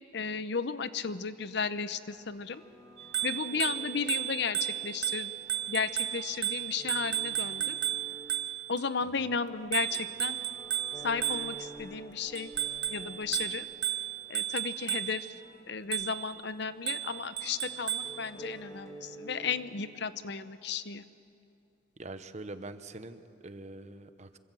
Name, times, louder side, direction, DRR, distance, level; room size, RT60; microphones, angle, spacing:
voice 1, 0.1-2.6 3.2-5.3 5.7-7.8 8.7-10.4 11.0-12.5 12.9-13.7 14.3-15.3 15.7-21.0, left 5 dB, 65° left, 13 dB, 0.8 m, -34 dB
sound 1, 2.1-20.1, right 1 dB, 15° left, 2.3 m, -51 dB
Bicycle bell, 3.0-8.8 9.7-11.8 12.4-15.3 15.9-16.3 16.9-18.2, right 11 dB, 70° right, 1.6 m, -34 dB
voice 2, 22.0-24.4, right 2 dB, 35° right, 10 dB, 1.0 m, -44 dB
26.0 x 24.5 x 7.6 m, 2.7 s
head